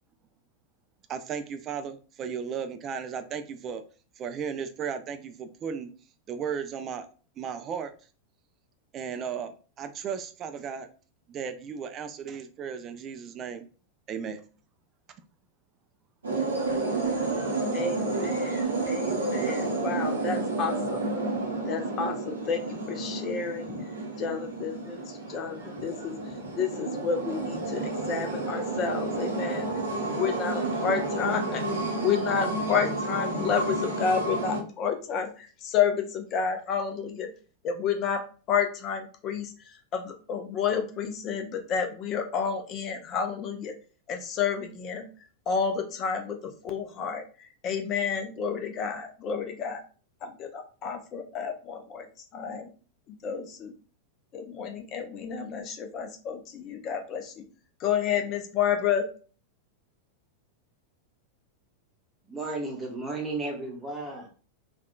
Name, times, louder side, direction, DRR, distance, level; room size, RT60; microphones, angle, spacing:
voice 1, 1.1-3.8 4.2-5.9 6.3-7.1 7.4-7.9 8.9-9.5 9.8-10.9 11.3-13.7 14.1-14.4 18.6-18.8, right 7 dB, 30° right, 0.4 m, -35 dB
sound 1, 16.2-34.6, right 2 dB, 70° right, 0.8 m, -30 dB
voice 2, 17.7-21.0 21.7-22.6 22.9-23.9 24.2-26.1 26.6-29.7 30.0-31.6 32.0-35.3 35.6-37.3 37.6-38.2 38.5-39.5 39.9-43.7 44.1-45.1 45.5-46.4 46.6-47.2 47.6-49.8 50.2-52.0 52.3-52.7 53.2-53.7 54.3-57.3 57.8-59.0, left 7 dB, 35° left, 0.6 m, -30 dB
voice 3, 62.3-64.3, right 2 dB, 10° right, 0.9 m, -33 dB
3.5 x 2.3 x 2.2 m
figure-of-eight pair, 90°, 0 cm